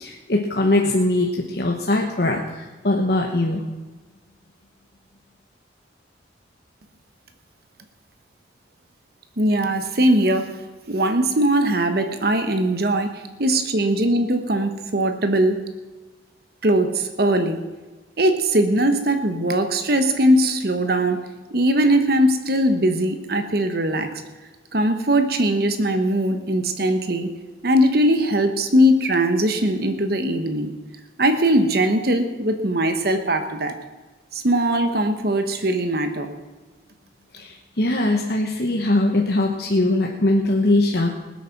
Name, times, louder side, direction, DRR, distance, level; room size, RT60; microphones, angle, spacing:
voice 1, 0.0-3.6 37.3-41.2, left 2 dB, 55° left, 1 dB, 1.1 m, -21 dB
voice 2, 9.4-10.5 10.9-15.6 16.6-17.6 18.2-21.2 21.5-24.1 24.7-27.3 27.6-30.7 31.2-33.7 34.3-36.3, right 1 dB, 55° right, 7 dB, 1.1 m, -20 dB
19.5 x 8.5 x 6.0 m, 1.3 s
head